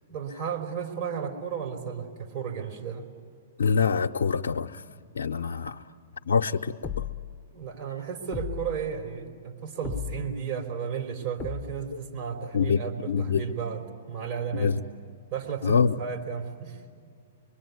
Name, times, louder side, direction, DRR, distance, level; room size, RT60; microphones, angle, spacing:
voice 1, 0.1-3.1 7.5-13.8 14.1-14.7 15.3-16.8, right 7 dB, 50° right, 3 dB, 3.5 m, -34 dB
voice 2, 3.6-4.8 5.1-5.8 6.3-7.1 11.9-12.0 12.5-13.4 14.5-14.8 15.6-16.0, left 6 dB, 80° left, 4 dB, 0.7 m, -25 dB
sound 1, 6.8-7.4 8.3-8.9 9.8-10.5 11.4-12.0, left 8 dB, 20° left, 0.7 m, -36 dB
24.5 x 23.5 x 9.5 m, 2.2 s
hypercardioid pair, 120°, 0 cm